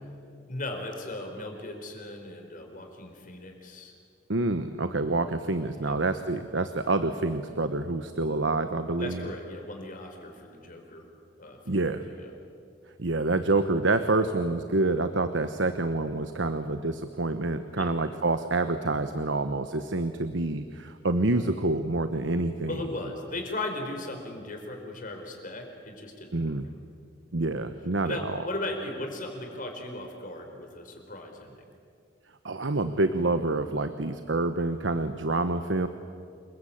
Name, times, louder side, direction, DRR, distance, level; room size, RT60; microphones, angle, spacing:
voice 1, 0.5-3.9 5.8-5.9 9.0-11.1 11.4-12.3 17.7-17.9 22.7-26.5 28.0-31.6, left 2 dB, 45° left, 3 dB, 4.6 m, -37 dB
voice 2, 4.3-9.3 11.7-12.0 13.0-22.7 26.3-26.7 27.3-28.4 32.4-35.9, right 2 dB, 90° right, 10 dB, 1.1 m, -27 dB
28.0 x 22.5 x 8.7 m, 2.3 s
head